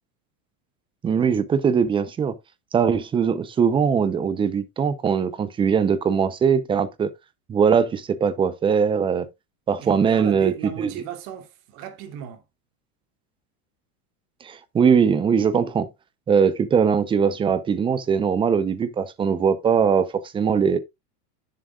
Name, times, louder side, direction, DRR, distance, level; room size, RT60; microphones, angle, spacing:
voice 1, 1.0-2.3 2.7-7.1 7.5-9.3 9.7-10.9 14.4-15.9 16.3-20.8, right 6 dB, 10° right, 0.5 m, -21 dB
voice 2, 9.8-12.4, right 9 dB, 50° right, 2.8 m, -35 dB
10.0 x 7.6 x 2.4 m
supercardioid pair, 150°, 47 cm